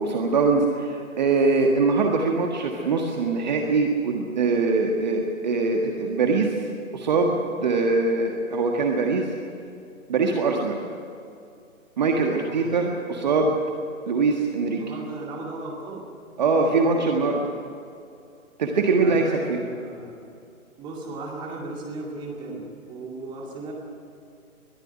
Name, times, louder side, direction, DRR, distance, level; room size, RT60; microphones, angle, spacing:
voice 1, 0.0-6.6 6.9-9.3 10.1-10.8 12.0-13.6 14.1-14.8 16.4-17.4 18.6-19.6, right 3 dB, 30° right, 2 dB, 1.6 m, -22 dB
voice 2, 14.7-16.1 16.4-17.3 18.9-20.1 20.8-23.7, right 2 dB, 10° right, -1 dB, 2.3 m, -37 dB
21.0 x 13.0 x 10.0 m, 2.6 s
figure-of-eight pair, 140°, 42 cm